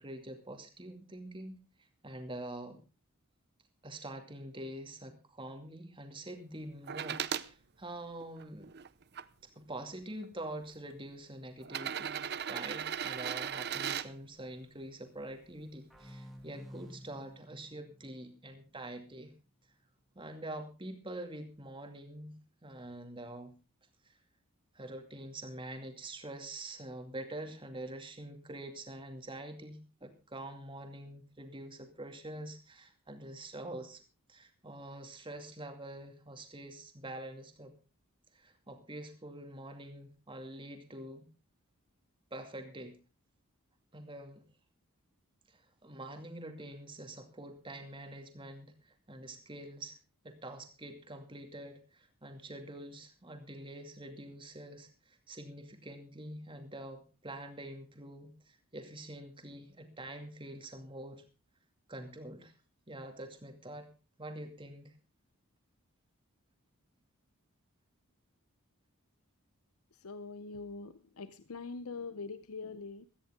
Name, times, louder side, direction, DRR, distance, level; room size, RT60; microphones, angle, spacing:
voice 1, 0.0-1.6 2.0-2.8 3.8-8.7 9.6-19.3 20.2-23.5 24.7-34.0 34.3-37.7 38.3-41.2 42.3-43.0 43.9-44.4 45.8-48.7 49.1-50.0 50.2-61.2 61.9-62.5 62.9-63.9 64.2-64.9, right 1 dB, 25° right, 5 dB, 2.3 m, -45 dB
sound 1, 6.9-7.5 8.2-9.2 10.2-10.3 11.6-14.1 15.9-16.0, right 9 dB, 50° right, 0.6 m, -37 dB
sound 2, 15.9-19.3, equal, ahead, 2.2 m, -53 dB
voice 2, 69.9-73.1, left 4 dB, 80° left, 13 dB, 0.8 m, -43 dB
17.0 x 14.0 x 3.7 m, 0.31 s
head